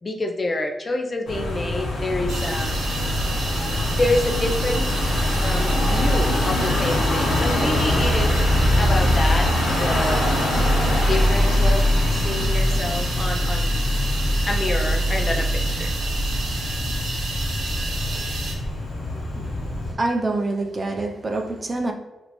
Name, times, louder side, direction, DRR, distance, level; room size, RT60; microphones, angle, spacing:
voice 1, 0.0-2.7 3.9-4.9 5.4-8.3 8.8-10.3 11.0-11.9 12.2-13.9 14.4-15.9, left 2 dB, 30° left, 0.4 m, -27 dB
Car passing by / Engine, 1.3-19.9, left 1 dB, 65° left, 0.8 m, -22 dB
sound 1, 2.3-18.5, right 3 dB, 90° right, 0.7 m, -32 dB
voice 2, 19.1-19.6 19.9-21.9, right 2 dB, 30° right, 0.4 m, -26 dB
3.4 x 2.5 x 2.9 m
cardioid pair, 105°, 0 cm